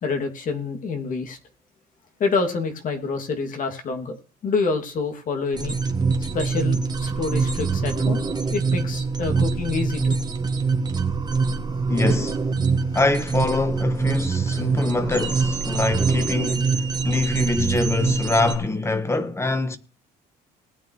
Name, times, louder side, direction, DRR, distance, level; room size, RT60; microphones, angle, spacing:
voice 1, 0.0-1.4 2.2-5.8 6.3-8.2 8.5-10.1, left 4 dB, 50° left, 2.5 m, -27 dB
sound 1, 5.5-18.6, right 4 dB, 25° right, 1.6 m, -24 dB
voice 2, 11.9-12.5 12.9-19.8, left 2 dB, 15° left, 1.3 m, -24 dB
19.5 x 8.9 x 3.2 m
cardioid pair, 110°, 17 cm